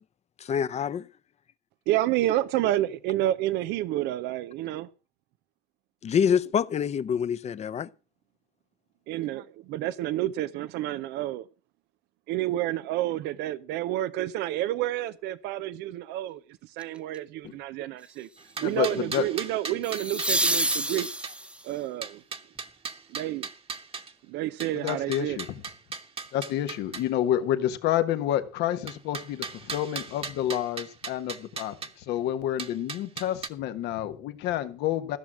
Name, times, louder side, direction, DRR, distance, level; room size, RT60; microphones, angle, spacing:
voice 1, 0.5-1.0 6.0-7.9, left 7 dB, 40° left, 0.7 m, -26 dB
voice 2, 1.9-4.9 9.1-11.4 12.3-16.4 16.8-18.3 18.6-21.1 21.6-22.2 23.1-23.5 24.3-25.4, right 14 dB, 90° right, 0.6 m, -29 dB
sound 1, 16.8-17.1 19.8-21.7 24.6-24.7, right 1 dB, 5° right, 0.9 m, -28 dB
sound 2, 18.4-21.3 22.0-24.1 24.6-27.1 28.9-31.9 32.6-33.5, right 5 dB, 35° right, 1.2 m, -38 dB
voice 3, 18.6-19.2 24.7-25.6 26.3-35.2, left 11 dB, 85° left, 1.4 m, -29 dB
15.0 x 6.4 x 7.3 m
cardioid pair, 110°, 17 cm